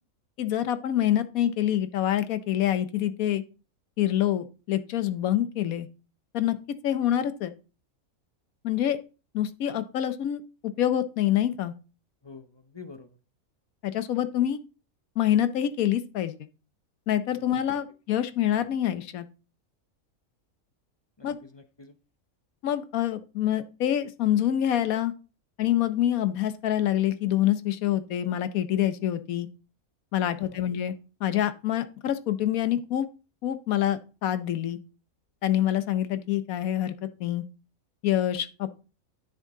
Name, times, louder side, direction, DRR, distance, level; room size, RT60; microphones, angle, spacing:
voice 1, 0.4-3.4 4.0-5.9 6.3-6.6 6.8-7.5 8.6-9.0 9.3-10.4 10.8-11.7 13.8-14.6 15.2-16.4 17.1-19.3 21.2-21.4 22.6-25.1 25.6-29.5 30.1-30.9 31.2-33.1 33.4-34.8 35.4-36.9 37.2-37.4 38.0-38.7, left 11 dB, 80° left, 12 dB, 1.2 m, -26 dB
voice 2, 12.2-13.2 17.3-17.5 21.2-22.0 30.4-30.6, left 4 dB, 40° left, 8 dB, 0.4 m, -47 dB
10.0 x 6.5 x 3.7 m, 0.34 s
omnidirectional pair, 1.5 m